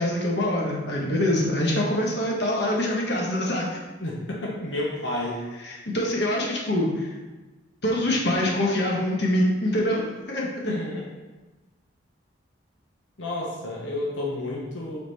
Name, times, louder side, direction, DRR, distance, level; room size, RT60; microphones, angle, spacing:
voice 1, 0.0-3.7 5.6-7.1 7.8-10.7, left 1 dB, 60° left, -2 dB, 1.4 m, -24 dB
voice 2, 4.0-5.4 10.6-11.1 13.2-15.0, left 1 dB, 75° left, -3 dB, 1.2 m, -30 dB
8.2 x 4.3 x 4.2 m, 1.2 s
head